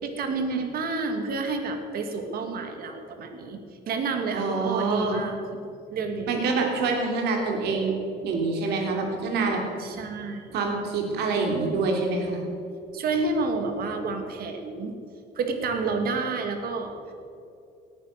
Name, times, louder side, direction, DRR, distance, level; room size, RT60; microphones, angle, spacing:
voice 1, 0.0-3.6 3.9-5.4 5.9-6.4 9.8-10.5 12.9-15.0 15.4-16.9, right 4 dB, 60° right, 5 dB, 2.4 m, -29 dB
voice 2, 4.3-5.2 6.3-7.9 8.2-9.6 10.5-12.4, right 3 dB, 80° right, 1 dB, 3.3 m, -26 dB
18.5 x 10.5 x 6.7 m, 2.7 s
cardioid pair, 110°, 17 cm